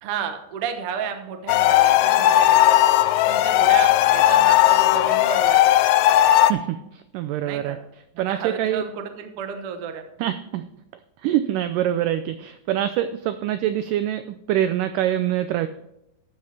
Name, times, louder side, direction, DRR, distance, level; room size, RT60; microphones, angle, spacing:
voice 1, 0.0-2.8 3.3-5.8 7.4-7.8 8.3-10.3, right 7 dB, 70° right, 6 dB, 1.4 m, -32 dB
sound 1, 1.5-6.5, left 13 dB, 80° left, 2.1 m, -16 dB
voice 2, 6.4-7.8 8.2-8.8 10.2-10.6 11.2-15.7, right 12 dB, 85° right, 11 dB, 1.9 m, -25 dB
12.5 x 9.3 x 3.4 m, 0.85 s
omnidirectional pair, 4.3 m